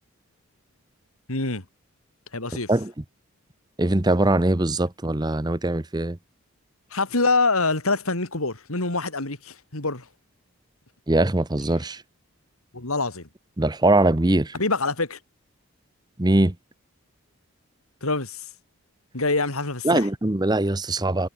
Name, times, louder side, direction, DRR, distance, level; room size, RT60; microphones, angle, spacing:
voice 1, 1.3-1.6 2.3-2.7 6.9-10.1 12.7-13.3 14.5-15.2 18.0-18.5 19.1-20.1, left 3 dB, 75° left, 3.7 m, -25 dB
voice 2, 3.8-6.2 11.1-12.0 13.6-14.5 16.2-16.5 19.8-21.3, right 1 dB, 20° right, 0.8 m, -21 dB
head